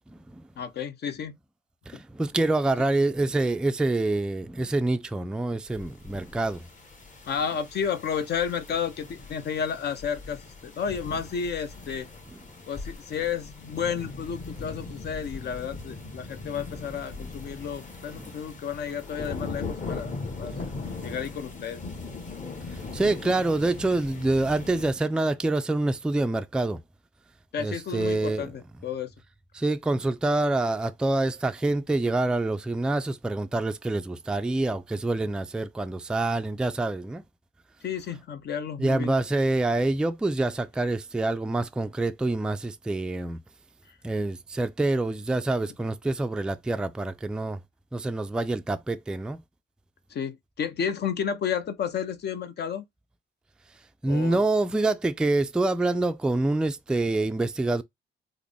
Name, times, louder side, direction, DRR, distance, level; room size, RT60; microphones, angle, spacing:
voice 1, 0.6-1.3 7.3-12.1 12.7-20.7 21.0-21.8 27.5-29.1 37.8-39.1 43.9-44.0 50.1-52.8 54.1-54.4, left 7 dB, 55° left, 0.6 m, -32 dB
voice 2, 1.9-6.6 17.2-17.3 18.2-18.3 20.8-21.0 22.7-26.8 27.6-28.5 29.5-37.2 38.8-43.4 44.0-47.6 47.9-49.4 54.0-57.8, right 2 dB, 5° right, 0.3 m, -26 dB
sound 1, 5.7-24.9, left 3 dB, 40° left, 1.3 m, -39 dB
3.6 x 2.1 x 3.3 m
cardioid pair, 90°, 20 cm